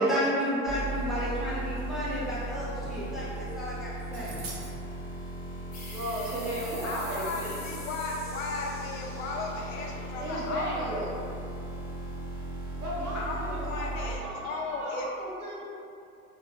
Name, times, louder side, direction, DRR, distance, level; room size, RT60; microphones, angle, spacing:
voice 1, 0.0-4.4, equal, ahead, -10 dB, 0.7 m, -31 dB
sound 1, 0.7-14.2, right 2 dB, 55° right, 1.2 m, -37 dB
sound 2, 4.1-4.7 6.7-6.8 7.0-8.8, right 3 dB, 35° right, 0.8 m, -47 dB
sound 3, 5.7-11.0, left 2 dB, 30° left, 0.9 m, -46 dB
voice 2, 5.9-7.7 10.2-11.1 12.8-15.6, right 1 dB, 85° right, -6 dB, 0.8 m, -35 dB
voice 3, 6.8-11.0 13.1-15.1, left 3 dB, 60° left, -1 dB, 0.6 m, -35 dB
3.0 x 2.3 x 2.3 m, 2.6 s
hypercardioid pair, 90°, 44 cm